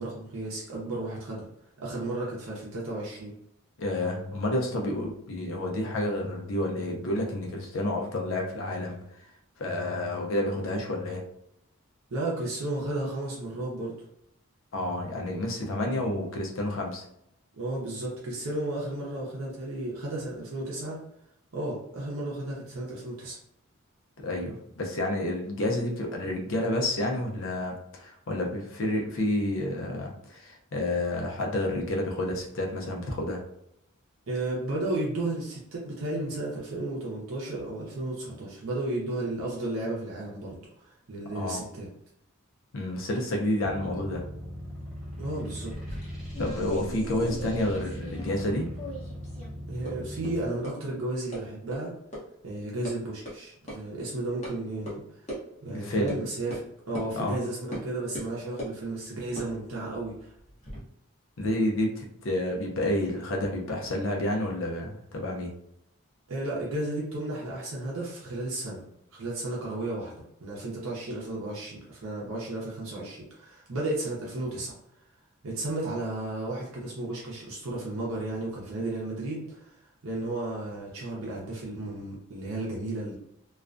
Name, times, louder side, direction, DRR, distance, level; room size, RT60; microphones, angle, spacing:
voice 1, 0.0-1.4 1.8-3.3 12.1-13.9 17.5-21.0 21.5-23.4 34.3-41.9 45.2-45.7 49.7-51.9 52.4-55.0 55.6-56.6 56.9-60.3 66.3-70.1 70.4-74.7 75.4-79.7 80.0-83.1, right 2 dB, 70° right, -4 dB, 0.7 m, -33 dB
voice 2, 3.8-9.0 9.6-11.2 14.7-17.0 24.2-33.4 41.3-41.6 42.7-44.2 46.4-48.7 55.7-56.2 57.2-57.4 61.4-65.5, left 1 dB, 65° left, 1 dB, 0.5 m, -29 dB
sound 1, 43.7-50.5, equal, ahead, 0.6 m, -39 dB
sound 2, 45.7-48.5 48.7-49.5 49.8-49.9 50.2-50.3 50.6-50.7 51.3-51.4 51.7-51.8 52.1-52.2 52.5-52.9 53.3-53.4 53.7-53.8 54.4-54.5 54.9-55.0 55.3-55.4 56.1-56.2 56.5-56.6 56.9-57.1 57.7-57.8 58.1-58.8 59.3-60.8, equal, 30° left, 0.8 m, -39 dB
2.3 x 2.2 x 2.4 m, 0.76 s
head